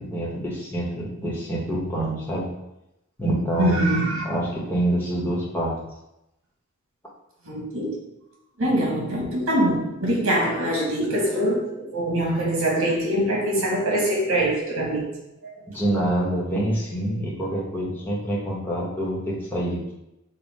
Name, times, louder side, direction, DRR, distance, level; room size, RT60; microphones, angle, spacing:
voice 1, 0.0-2.5 3.2-5.8 15.6-19.9, right 1 dB, 10° left, -5 dB, 1.0 m, -26 dB
voice 2, 3.6-4.2 7.4-8.0 8.6-15.0 15.4-15.5, right 1 dB, 85° right, -1 dB, 1.1 m, -23 dB
5.3 x 2.2 x 4.1 m, 0.89 s
head